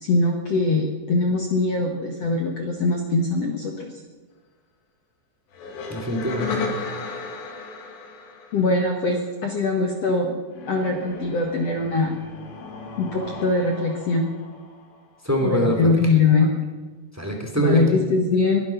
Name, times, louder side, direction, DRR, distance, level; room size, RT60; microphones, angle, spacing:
voice 1, 0.0-3.9 8.5-10.3 10.7-12.1 13.0-14.3 15.4-16.5 17.5-18.6, left 3 dB, 65° left, 2 dB, 1.6 m, -22 dB
sound 1, 5.5-9.2 10.5-15.2, left 4 dB, 80° left, 4.3 m, -35 dB
voice 2, 5.9-6.6 15.2-15.9 17.1-17.8, right 1 dB, 5° right, 2 dB, 1.3 m, -23 dB
21.0 x 12.0 x 5.8 m, 1.3 s
omnidirectional pair, 5.0 m